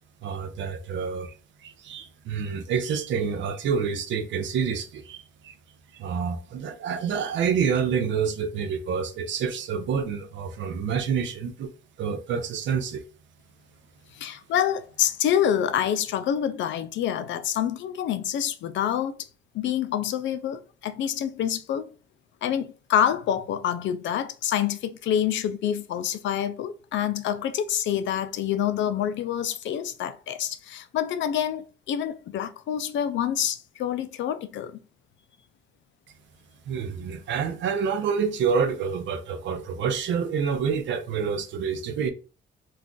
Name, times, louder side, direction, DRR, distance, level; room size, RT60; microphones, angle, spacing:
voice 1, 0.2-1.3 1.6-5.5 6.0-11.7 12.0-13.0 36.7-42.1, right 6 dB, 70° right, 0.5 m, -28 dB
voice 2, 14.1-19.3 19.5-21.9 22.4-34.8, left 10 dB, 70° left, 0.4 m, -27 dB
2.4 x 2.3 x 3.7 m
cardioid pair, 90°, 20 cm